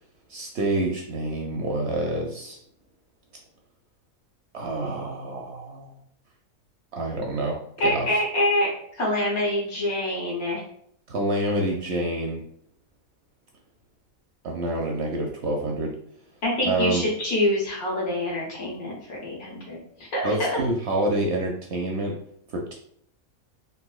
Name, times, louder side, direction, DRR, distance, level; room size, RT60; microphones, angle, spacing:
voice 1, 0.3-2.6 4.5-5.9 6.9-8.2 11.1-12.4 14.4-15.9 16.6-17.0 20.2-22.1 22.5-22.7, right 1 dB, 65° right, 0 dB, 0.7 m, -27 dB
voice 2, 7.8-8.7 9.0-10.6 16.4-20.6, left 1 dB, 85° left, -3 dB, 1.7 m, -26 dB
4.0 x 2.5 x 2.3 m, 0.67 s
omnidirectional pair, 1.5 m